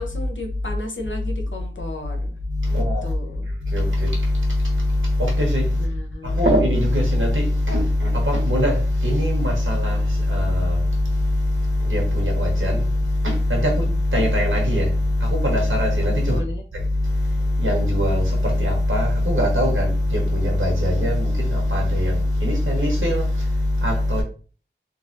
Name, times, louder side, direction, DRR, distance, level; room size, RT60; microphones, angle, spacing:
voice 1, 0.0-2.3 2.7-3.5 5.8-6.4 16.3-16.6, left 2 dB, 75° left, 0.8 m, -34 dB
voice 2, 2.5-3.2 3.4-5.9 6.2-16.4 16.7-24.2, left 1 dB, 85° right, 1.3 m, -21 dB
3.9 x 2.6 x 2.6 m
wide cardioid pair, 50°, 20 cm